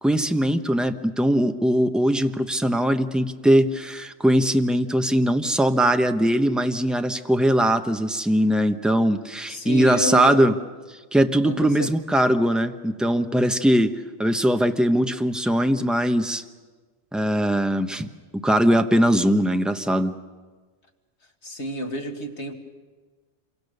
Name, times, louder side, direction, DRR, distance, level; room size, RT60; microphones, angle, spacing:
voice 1, 0.0-10.5 11.1-16.4 17.1-18.1 18.3-20.2, equal, ahead, 7 dB, 0.9 m, -21 dB
voice 2, 9.5-10.5 11.4-11.9 21.4-22.5, equal, 80° left, 3 dB, 2.4 m, -30 dB
27.5 x 24.0 x 6.7 m, 1.4 s
omnidirectional pair, 1.1 m